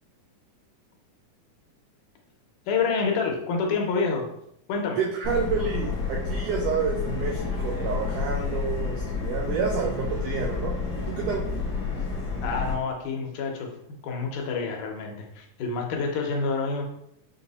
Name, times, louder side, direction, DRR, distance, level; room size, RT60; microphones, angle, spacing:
voice 1, 2.7-4.3 4.7-5.0 12.4-13.8 14.0-16.8, left 4 dB, 90° left, 1 dB, 2.3 m, -28 dB
voice 2, 5.0-11.4, right 6 dB, 90° right, 0 dB, 1.4 m, -29 dB
Subway metro underground, 5.2-12.7, left 5 dB, 55° left, 0.9 m, -30 dB
5.6 x 2.0 x 3.9 m, 0.75 s
omnidirectional pair, 3.5 m